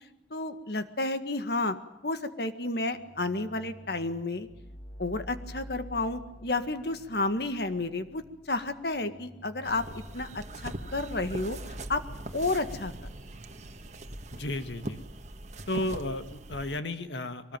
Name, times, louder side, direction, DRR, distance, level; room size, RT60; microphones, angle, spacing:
voice 1, 0.3-1.8 2.0-4.5 5.0-9.8 10.1-12.0 12.3-12.9, left 2 dB, 60° left, 9 dB, 1.8 m, -31 dB
sound 1, 2.9-14.9, equal, 20° left, 2.0 m, -48 dB
sound 2, 9.6-16.8, right 1 dB, 40° right, 1.5 m, -41 dB
voice 2, 14.3-15.0 15.7-17.6, left 1 dB, 80° left, 9 dB, 1.9 m, -33 dB
23.5 x 19.5 x 9.1 m, 0.90 s
head